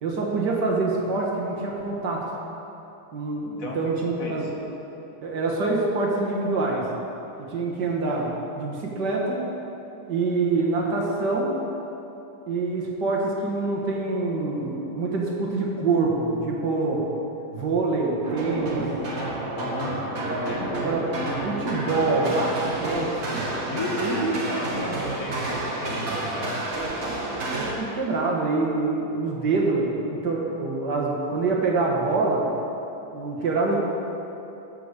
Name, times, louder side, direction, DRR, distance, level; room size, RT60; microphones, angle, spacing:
voice 1, 0.0-2.3 3.1-4.5 5.2-6.9 7.4-9.5 10.0-11.5 12.5-17.0 17.5-18.9 20.2-20.4 20.7-21.1 21.4-23.4 24.0-24.6 25.3-25.4 27.1-27.2 27.6-32.5 33.1-33.8, right 3 dB, 75° right, -2 dB, 2.1 m, -25 dB
voice 2, 3.4-3.9 4.2-4.5 19.5-20.0 20.3-20.7 23.7-26.6, left 2 dB, 55° left, -1 dB, 1.7 m, -34 dB
sound 1, 18.2-27.7, right 2 dB, 45° right, 1.5 m, -30 dB
12.0 x 6.0 x 6.7 m, 3.0 s
omnidirectional pair, 1.8 m